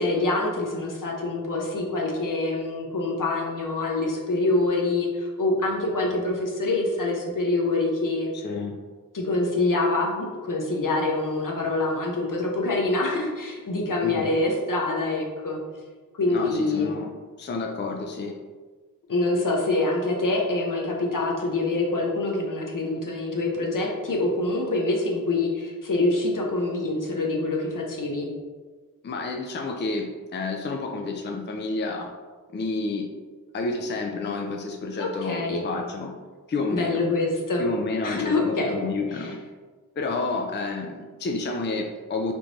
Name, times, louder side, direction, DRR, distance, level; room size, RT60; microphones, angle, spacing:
voice 1, 0.0-8.3 9.1-15.6 16.1-17.0 19.1-28.3 35.0-35.6 36.7-37.6 38.0-38.7 39.1-39.3, left 2 dB, 65° left, -1 dB, 0.8 m, -25 dB
voice 2, 8.3-8.8 14.0-14.3 16.3-17.1 17.4-18.3 29.0-32.1 32.5-33.1 33.5-36.1 36.5-37.0 37.6-39.4 40.0-42.3, left 3 dB, 35° left, 2 dB, 0.4 m, -30 dB
3.5 x 2.5 x 3.0 m, 1.4 s
cardioid pair, 40°, 34 cm